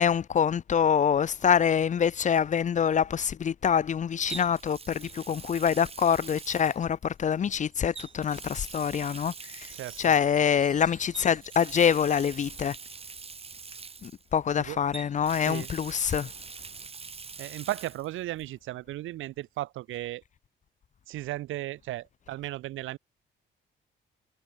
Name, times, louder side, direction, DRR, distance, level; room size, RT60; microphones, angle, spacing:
voice 1, 0.0-9.7 10.0-12.8 14.0-16.3, left 7 dB, 40° left, 0.5 m, -25 dB
Water tap faucet, 1.3-1.6 4.3-7.3 7.9-10.4 11.1-14.6 14.9-18.1 18.4-18.5 20.0-20.1, right 5 dB, 30° right, 1.5 m, -44 dB
Wind chime, 7.2-13.1, right 6 dB, 45° right, 6.1 m, -55 dB
voice 2, 9.7-10.1 14.6-14.8 15.3-15.7 17.4-20.2 21.1-23.0, right 15 dB, 85° right, 1.3 m, -35 dB
cardioid pair, 90°, 20 cm